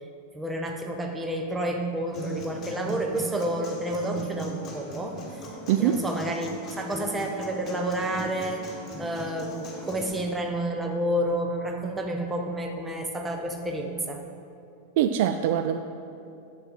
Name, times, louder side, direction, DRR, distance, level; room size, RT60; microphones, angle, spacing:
voice 1, 0.3-5.2 5.8-14.2, right 1 dB, 10° right, 3 dB, 0.9 m, -30 dB
Human voice / Acoustic guitar, 2.1-10.1, left 1 dB, 25° left, 1.8 m, -39 dB
voice 2, 5.7-6.0 15.0-15.8, right 10 dB, 50° right, 8 dB, 0.3 m, -23 dB
10.0 x 7.3 x 4.3 m, 2.6 s
figure-of-eight pair, 90°, 0 cm